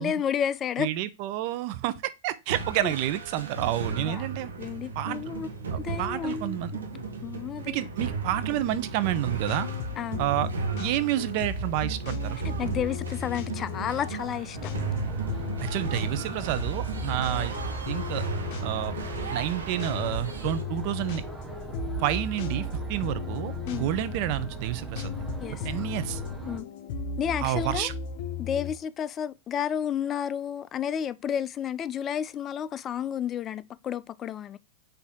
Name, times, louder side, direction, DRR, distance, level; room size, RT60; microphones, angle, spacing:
voice 1, 0.0-0.9 2.8-2.9 4.1-4.3 4.6-5.5 5.8-6.6 7.2-7.9 10.0-10.2 12.4-14.7 23.7-23.9 25.4-25.7 26.5-26.7 27.2-27.9 28.4-34.6, left 8 dB, 30° left, 0.3 m, -31 dB
voice 2, 0.8-4.5 5.0-5.2 5.7-6.7 7.7-9.7 10.2-10.5 10.8-12.4 15.6-17.5 17.9-18.2 18.6-19.0 19.3-21.2 22.0-25.2 25.6-26.2 27.4-27.9, right 13 dB, 50° right, 0.4 m, -29 dB
sound 1, 2.5-20.6, right 4 dB, 90° right, 0.9 m, -35 dB
sound 2, 9.1-28.7, left 5 dB, 55° left, 0.7 m, -36 dB
sound 3, 14.5-26.6, right 6 dB, 10° right, 0.8 m, -39 dB
4.3 x 2.6 x 3.5 m
hypercardioid pair, 120°, 0 cm